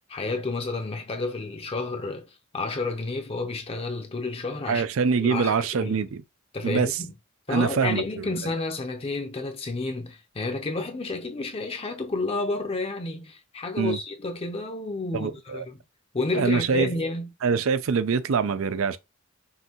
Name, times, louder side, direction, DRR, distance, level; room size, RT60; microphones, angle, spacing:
voice 1, 0.1-4.8 5.2-6.1 6.5-7.1 7.5-15.8 16.1-17.3, left 3 dB, 30° left, 0.6 m, -31 dB
voice 2, 4.7-6.2 6.6-7.0 7.5-8.0 13.8-14.0 15.1-15.7 16.3-16.9 17.4-19.0, right 5 dB, 75° right, 0.5 m, -24 dB
5.5 x 2.7 x 2.9 m
head